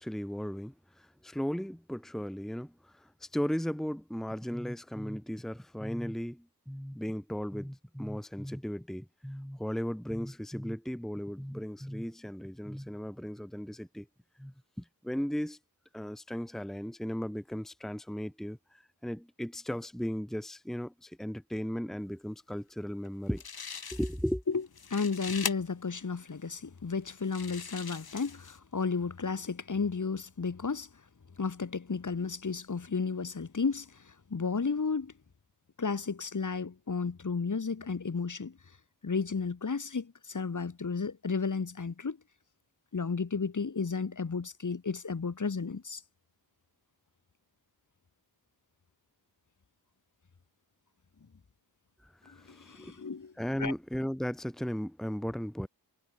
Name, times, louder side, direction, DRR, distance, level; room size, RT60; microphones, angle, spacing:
voice 1, 0.0-14.1 14.4-15.6 15.9-23.4 23.9-24.4 52.0-53.0 53.4-55.7, equal, ahead, 1.4 m, -36 dB
sound 1, 23.0-23.1 23.4-24.3 24.7-25.5 26.3-26.4 27.1-28.6, left 6 dB, 70° left, 3.4 m, -40 dB
voice 2, 24.9-30.9 31.4-35.1 35.8-38.6 39.0-42.2 42.9-46.0 52.2-53.3 53.6-53.7, left 5 dB, 50° left, 2.7 m, -33 dB
wide cardioid pair, 80°, 39 cm